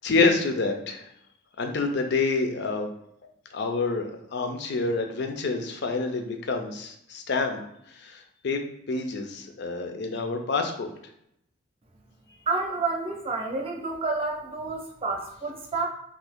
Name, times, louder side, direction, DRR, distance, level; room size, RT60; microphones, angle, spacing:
voice 1, 0.0-1.1 1.6-2.9 3.5-7.6 7.9-8.6 8.9-10.9, left 3 dB, 60° left, 5 dB, 0.5 m, -27 dB
voice 2, 12.5-15.9, right 3 dB, 30° right, 0 dB, 0.6 m, -29 dB
2.7 x 2.6 x 3.5 m, 0.75 s
head